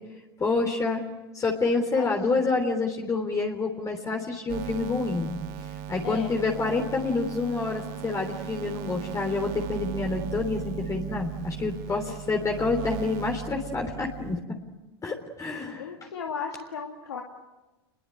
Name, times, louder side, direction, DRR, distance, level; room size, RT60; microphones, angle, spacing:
voice 1, 0.4-1.0 1.3-5.3 5.9-14.4 15.0-15.9, left 3 dB, 25° left, 2 dB, 3.5 m, -28 dB
voice 2, 2.0-2.4 6.0-6.3 6.6-6.9 12.0-12.2 15.8-17.2, left 6 dB, 90° left, 2 dB, 2.5 m, -36 dB
sound 1, 4.5-14.4, right 11 dB, 60° right, 1.8 m, -37 dB
29.0 x 22.0 x 8.8 m, 1.1 s
hypercardioid pair, 90°, 13 cm